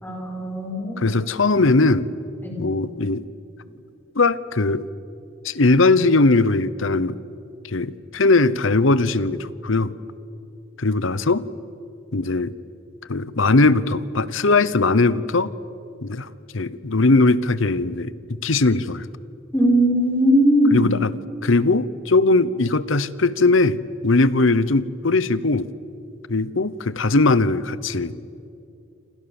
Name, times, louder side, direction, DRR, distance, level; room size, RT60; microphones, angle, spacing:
voice 1, 0.0-1.1 2.4-2.7 19.5-20.9, equal, 10° left, 1 dB, 5.2 m, -19 dB
voice 2, 1.0-2.1 2.6-3.2 4.2-4.9 5.4-7.2 7.7-9.9 10.8-11.5 12.1-12.5 13.1-15.5 16.0-16.3 16.5-18.2 18.4-19.0 20.7-25.7 26.3-28.1, left 3 dB, 65° left, 17 dB, 0.9 m, -19 dB
28.5 x 26.0 x 7.2 m, 2.6 s
head